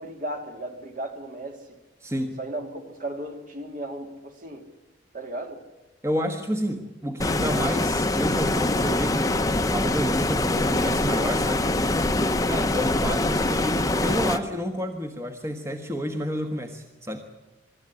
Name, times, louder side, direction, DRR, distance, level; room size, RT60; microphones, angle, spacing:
voice 1, 0.0-1.6 2.4-4.7 5.1-5.6, right 1 dB, 45° right, 5 dB, 2.8 m, -35 dB
voice 2, 2.0-2.4 6.0-9.4 9.7-11.7 12.5-17.2, equal, 15° right, 5 dB, 1.4 m, -30 dB
Stream, 7.2-14.4, left 2 dB, 20° left, 0.9 m, -24 dB
24.0 x 13.0 x 9.8 m, 1.1 s
head